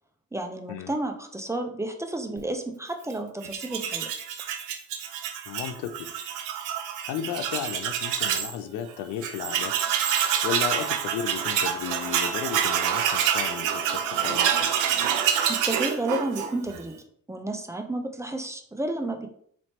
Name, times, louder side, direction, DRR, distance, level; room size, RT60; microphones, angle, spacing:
voice 1, 0.3-4.1 15.5-16.9 17.3-19.3, right 2 dB, 10° right, 5 dB, 0.5 m, -31 dB
Tools, 3.4-8.5 8.9-9.0 9.2-16.8, right 9 dB, 90° right, 0.6 m, -27 dB
voice 2, 5.5-6.1 7.0-9.8 10.4-14.7, left 9 dB, 85° left, 11 dB, 0.5 m, -34 dB
4.3 x 3.0 x 2.8 m, 0.62 s
cardioid pair, 90°, 30 cm